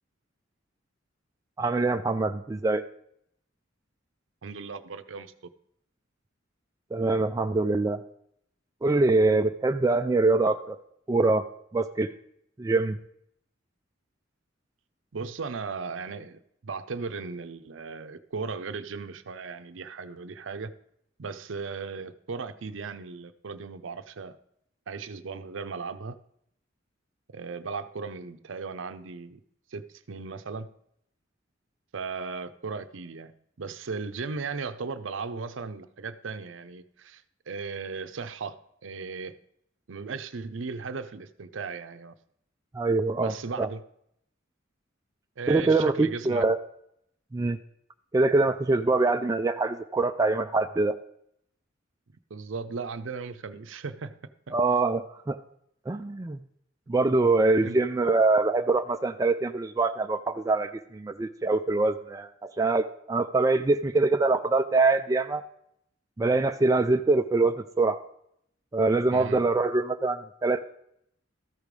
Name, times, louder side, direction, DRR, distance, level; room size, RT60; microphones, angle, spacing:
voice 1, 1.6-2.8 6.9-8.0 8.8-10.8 11.1-11.4 11.7-12.1 12.6-13.0 42.7-43.3 43.6-43.7 45.5-46.6 47.3-47.6 48.1-50.9 54.5-55.4 55.9-56.4 56.9-65.4 66.2-68.0 68.7-70.6, right 3 dB, 15° right, 6 dB, 0.3 m, -24 dB
voice 2, 4.4-5.3 15.1-20.7 21.2-24.4 24.9-26.2 27.3-29.4 29.7-30.7 31.9-33.3 33.6-38.6 38.8-39.3 39.9-42.1 43.2-43.8 45.4-46.4 52.3-54.2 54.5-54.6 57.5-57.8 69.1-69.5, right 4 dB, 75° right, 11 dB, 0.6 m, -36 dB
13.5 x 4.9 x 5.2 m, 0.73 s
head